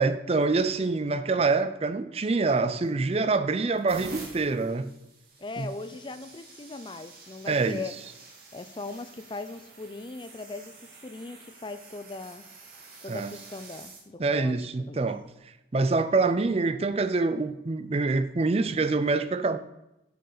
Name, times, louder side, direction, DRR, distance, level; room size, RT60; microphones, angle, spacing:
voice 1, 0.0-4.9 5.6-5.7 7.5-7.8 13.1-13.3 14.2-15.2 15.7-19.6, right 3 dB, 30° right, 0.5 m, -25 dB
sound 1, 2.9-3.2 3.7-14.0 14.9-15.2 16.7-16.9, right 3 dB, 50° right, 2.2 m, -48 dB
voice 2, 5.4-8.0 8.5-12.4 13.0-14.6 14.9-15.1, left 3 dB, 25° left, 0.5 m, -39 dB
8.0 x 7.8 x 6.7 m
head